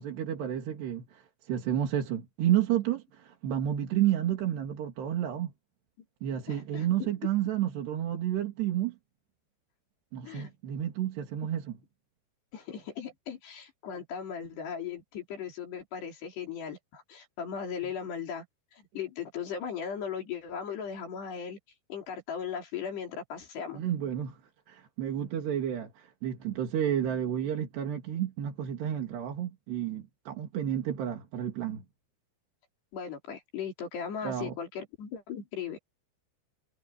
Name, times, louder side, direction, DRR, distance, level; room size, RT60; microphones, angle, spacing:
voice 1, 0.0-5.5 6.2-9.0 10.1-11.7 23.7-24.4 24.7-31.8 34.2-34.6, right 11 dB, 75° right, 4.6 m, -31 dB
voice 2, 6.5-7.1 10.3-10.5 12.5-18.5 18.7-21.6 21.9-23.8 32.9-35.8, left 7 dB, 75° left, 6.3 m, -38 dB
omnidirectional pair, 4.9 m